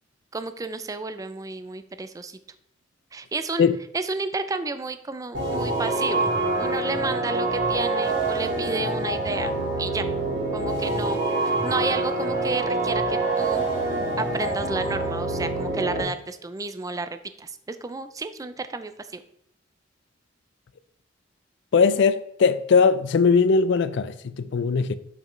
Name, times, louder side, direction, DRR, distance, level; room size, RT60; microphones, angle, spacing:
voice 1, 0.3-2.4 3.1-3.7 3.9-6.3 6.6-10.1 10.5-13.6 14.2-19.2, right 3 dB, 20° right, 0.4 m, -31 dB
sound 1, 5.3-16.0, right 2 dB, 65° right, 2.0 m, -26 dB
voice 2, 21.7-24.9, left 5 dB, 65° left, 0.4 m, -20 dB
7.0 x 5.5 x 3.1 m
head